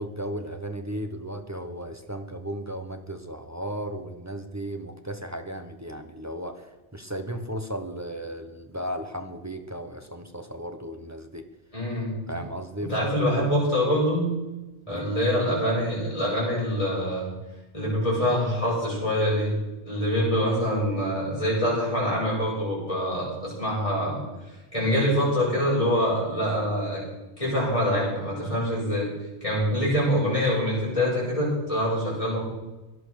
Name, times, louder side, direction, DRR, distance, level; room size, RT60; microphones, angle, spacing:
voice 1, 0.0-11.4 12.3-12.9 13.2-13.3 14.9-15.2, right 1 dB, 15° right, 7 dB, 1.1 m, -35 dB
voice 2, 11.7-12.4 12.9-14.3 14.9-17.3 17.7-19.5 19.8-24.2 24.7-27.0 27.4-29.1 29.4-32.4, equal, 30° left, -6 dB, 8.0 m, -25 dB
17.5 x 11.0 x 6.6 m, 1.1 s
omnidirectional pair, 1.2 m